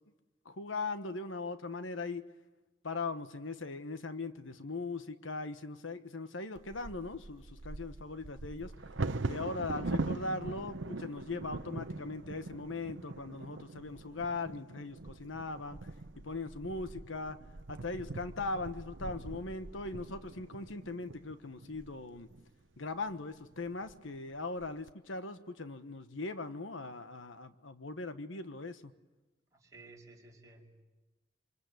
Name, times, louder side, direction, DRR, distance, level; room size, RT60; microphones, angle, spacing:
voice 1, 0.4-2.3 2.8-8.7 9.3-15.8 16.2-17.4 17.7-22.3 22.8-28.9, left 3 dB, 85° left, 1.3 m, -39 dB
Bird vocalization bird call bird song / Wind / Thunder, 6.6-22.4 23.1-23.2 23.5-23.9 24.4-24.9, right 2 dB, 70° right, 0.8 m, -42 dB
voice 2, 29.5-30.8, right 2 dB, 15° right, 5.8 m, -55 dB
27.5 x 26.0 x 8.3 m
head